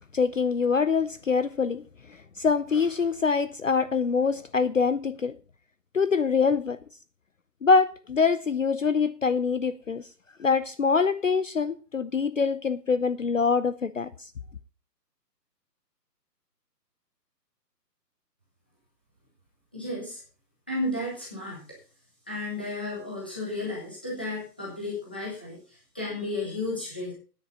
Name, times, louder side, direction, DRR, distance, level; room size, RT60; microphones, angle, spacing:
voice 1, 0.1-1.8 2.4-5.4 5.9-6.8 7.6-10.0 10.4-14.1, left 5 dB, 50° left, 0.6 m, -24 dB
voice 2, 19.7-20.2 20.7-21.6 22.3-25.6 25.9-27.1, left 2 dB, 5° left, 1.0 m, -33 dB
9.8 x 8.9 x 5.3 m
hypercardioid pair, 180°, 49 cm